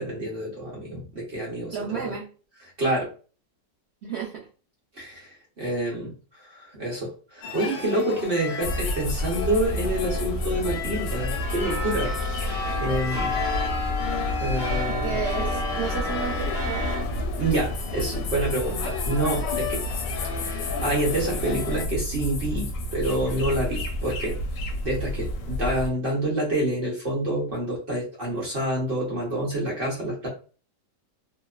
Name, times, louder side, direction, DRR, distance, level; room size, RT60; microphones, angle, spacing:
voice 1, 0.0-2.1 2.8-3.1 4.9-13.3 14.4-15.2 17.4-19.8 20.4-30.3, right 1 dB, 45° right, -3 dB, 0.7 m, -28 dB
voice 2, 1.7-2.3 4.0-4.5 12.8-13.3 14.9-16.9, right 7 dB, 80° right, -3 dB, 0.5 m, -33 dB
sound 1, 7.4-21.9, left 6 dB, 85° left, 1.2 m, -35 dB
sound 2, 8.6-25.9, left 1 dB, 70° left, 0.8 m, -30 dB
sound 3, 11.4-17.0, left 1 dB, 5° right, 0.5 m, -32 dB
2.9 x 2.0 x 2.3 m, 0.37 s
omnidirectional pair, 1.8 m